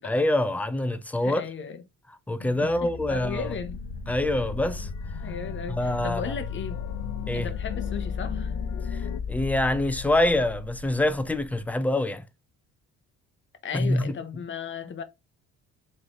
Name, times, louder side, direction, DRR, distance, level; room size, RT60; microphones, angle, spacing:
voice 1, 0.0-1.4 2.3-3.5 4.1-4.9 5.7-6.3 7.3-7.5 8.9-12.2 13.7-14.2, left 1 dB, 5° left, 0.5 m, -25 dB
voice 2, 1.2-1.8 2.6-3.7 5.2-6.8 7.3-8.5 13.6-15.0, left 6 dB, 40° left, 0.8 m, -35 dB
sound 1, 2.4-9.2, left 10 dB, 75° left, 0.7 m, -40 dB
sound 2, 3.0-11.8, left 5 dB, 25° left, 1.3 m, -35 dB
3.8 x 3.1 x 2.8 m
cardioid pair, 85°, 30 cm